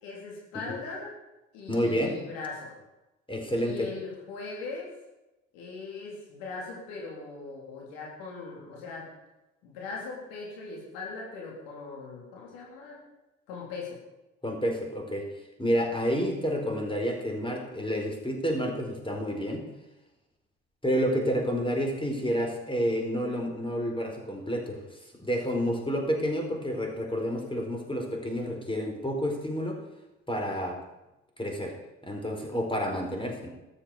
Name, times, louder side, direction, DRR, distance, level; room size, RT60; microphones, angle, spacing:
voice 1, 0.0-1.1 1.5-2.7 3.5-4.9 5.5-9.1 9.6-13.0 13.5-14.0, left 4 dB, 75° left, -3 dB, 3.7 m, -40 dB
voice 2, 1.7-2.2 3.3-3.9 14.4-15.3 15.6-19.7 20.8-29.8 30.3-30.8 31.4-31.7 32.0-33.5, equal, 15° left, 2 dB, 4.5 m, -29 dB
13.5 x 8.1 x 7.2 m, 0.98 s
hypercardioid pair, 45°, 34 cm